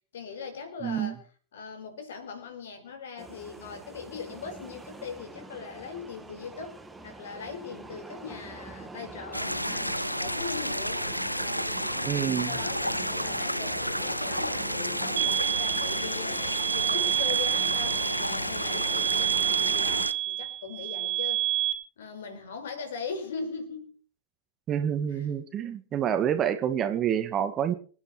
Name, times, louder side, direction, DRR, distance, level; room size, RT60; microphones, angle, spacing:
voice 1, 0.1-1.2 1.5-6.8 7.0-11.0 11.4-21.5 22.0-23.9 25.1-25.4, left 5 dB, 60° left, 6 dB, 5.2 m, -40 dB
voice 2, 0.8-1.2 12.1-12.6 24.7-27.7, right 9 dB, 30° right, 9 dB, 1.8 m, -28 dB
sound 1, 3.2-20.1, right 2 dB, 10° right, 2.1 m, -44 dB
sound 2, 9.3-20.1, equal, 90° left, 0.7 m, -31 dB
sound 3, 15.2-21.7, right 14 dB, 50° right, 2.3 m, -28 dB
26.0 x 10.0 x 4.6 m, 0.42 s
figure-of-eight pair, 90°, 0 cm